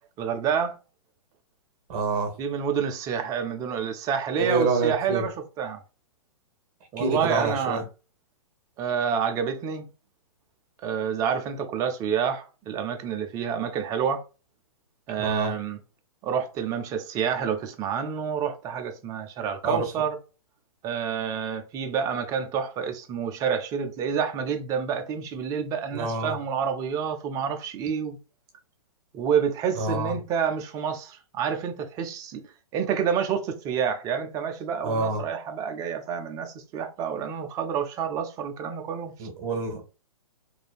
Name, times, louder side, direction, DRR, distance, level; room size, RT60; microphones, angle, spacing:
voice 1, 0.2-0.8 2.4-5.8 6.9-7.8 8.8-9.9 10.8-14.2 15.1-15.8 16.2-20.2 20.8-28.2 29.1-32.4 32.7-39.3, right 7 dB, 20° right, 0.4 m, -28 dB
voice 2, 1.9-2.3 4.4-5.2 7.0-7.8 15.2-15.5 19.6-19.8 25.9-26.4 29.8-30.1 34.8-35.2 39.2-39.8, right 3 dB, 35° right, 1.1 m, -27 dB
3.2 x 2.6 x 2.3 m
hypercardioid pair, 130°, 19 cm